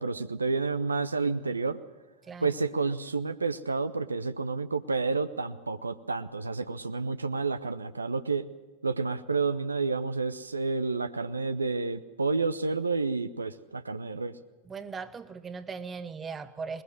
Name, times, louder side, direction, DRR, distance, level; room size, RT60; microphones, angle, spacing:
voice 1, 0.0-1.8 2.4-8.4 8.8-14.3, right 4 dB, 80° right, 10 dB, 0.8 m, -30 dB
voice 2, 14.7-16.8, right 5 dB, 20° right, 12 dB, 1.1 m, -38 dB
21.5 x 20.5 x 6.3 m, 1.2 s
figure-of-eight pair, 90°, 0 cm